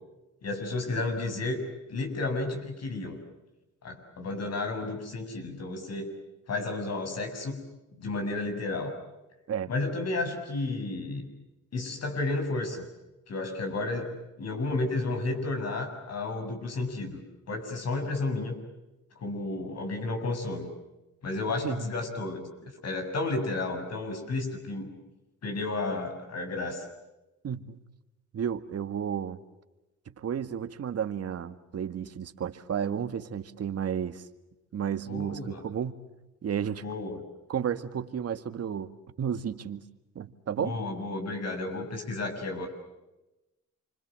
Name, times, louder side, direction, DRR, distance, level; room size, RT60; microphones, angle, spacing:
voice 1, 0.4-1.6 1.9-3.2 3.8-6.1 6.5-7.6 7.9-8.9 9.7-11.3 11.7-12.8 13.3-17.2 17.5-18.6 19.2-20.7 21.2-24.9 25.4-26.8 35.1-35.6 36.8-37.2 40.6-42.7, left 2 dB, 55° left, 6 dB, 7.2 m, -32 dB
voice 2, 27.4-27.8 28.3-29.4 30.2-34.3 34.7-35.9 36.4-36.8 37.5-38.9 39.2-39.8 40.2-40.8, right 8 dB, 55° right, 9 dB, 1.9 m, -32 dB
29.0 x 25.0 x 7.7 m, 1.0 s
cardioid pair, 90°, 30 cm